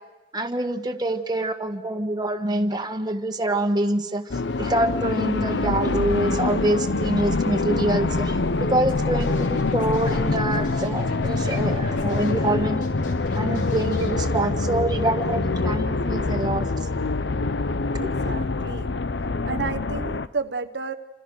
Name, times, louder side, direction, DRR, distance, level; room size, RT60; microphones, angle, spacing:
voice 1, 0.3-12.8 13.3-16.7 18.0-18.1, right 1 dB, 25° right, 6 dB, 1.5 m, -26 dB
sound 1, 4.3-20.3, left 3 dB, 80° left, 0.8 m, -25 dB
Scratching (performance technique), 8.9-9.0 9.2-12.5 12.8-14.1, left 2 dB, 45° left, 5.2 m, -48 dB
voice 2, 18.0-18.9 19.5-20.9, right 4 dB, 75° right, 7 dB, 1.0 m, -31 dB
28.0 x 26.5 x 6.4 m, 1.1 s
head